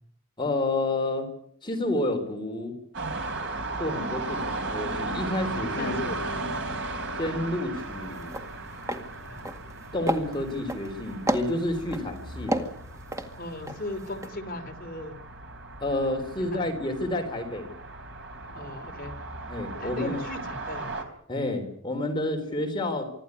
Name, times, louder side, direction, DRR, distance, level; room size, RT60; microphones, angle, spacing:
voice 1, 0.4-1.3 1.6-2.8 3.8-6.0 6.3-6.5 7.2-8.3 9.9-12.6 15.8-17.7 19.5-20.2 21.3-23.0, left 1 dB, 25° left, 4 dB, 3.7 m, -29 dB
sound 1, 2.9-21.0, right 2 dB, 60° right, 3.9 m, -36 dB
sound 2, 5.4-13.1, equal, 75° left, 4.5 m, -43 dB
voice 2, 5.8-6.2 9.3-9.4 13.4-15.2 16.5-16.6 18.5-19.1 19.8-20.9 22.1-22.2, left 2 dB, 45° left, 6 dB, 3.0 m, -37 dB
sound 3, 7.8-7.9 8.2-8.5 8.8-9.0 9.4-9.8 10.1-10.9 11.3-12.0 12.5-13.8 14.1-14.3, right 1 dB, 15° right, 2.0 m, -30 dB
25.0 x 14.0 x 9.6 m, 0.66 s
head